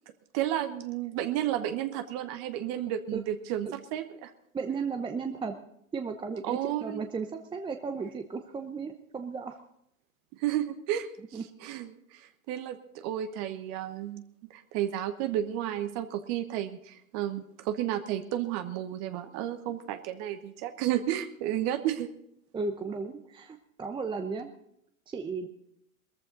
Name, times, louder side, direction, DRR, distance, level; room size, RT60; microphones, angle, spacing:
voice 1, 0.3-4.3 6.4-7.0 10.3-14.2 14.5-22.1, right 12 dB, 40° right, 9 dB, 1.2 m, -32 dB
voice 2, 4.5-5.6 5.9-9.6 11.3-11.4 22.5-24.5 25.1-25.5, right 5 dB, 10° right, 6 dB, 0.8 m, -35 dB
20.0 x 14.5 x 4.0 m, 0.75 s
hypercardioid pair, 105°, 41 cm